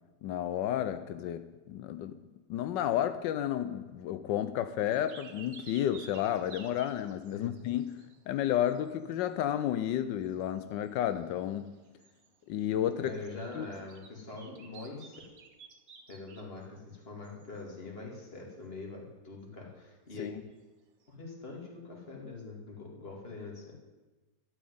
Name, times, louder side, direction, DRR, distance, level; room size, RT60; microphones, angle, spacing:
voice 1, 0.2-2.2 2.5-11.8 12.5-13.1 13.5-13.7 20.2-20.3, left 11 dB, 85° left, 11 dB, 1.3 m, -32 dB
sound 1, 4.9-8.4 8.7-9.6 10.0-10.1 10.2-16.7 17.2-17.6 21.0-21.1, right 5 dB, 55° right, 1.5 m, -54 dB
voice 2, 13.0-15.2 16.1-20.3 21.1-23.7, left 3 dB, 35° left, -1 dB, 2.7 m, -44 dB
12.0 x 6.3 x 9.4 m, 1.2 s
omnidirectional pair, 1.9 m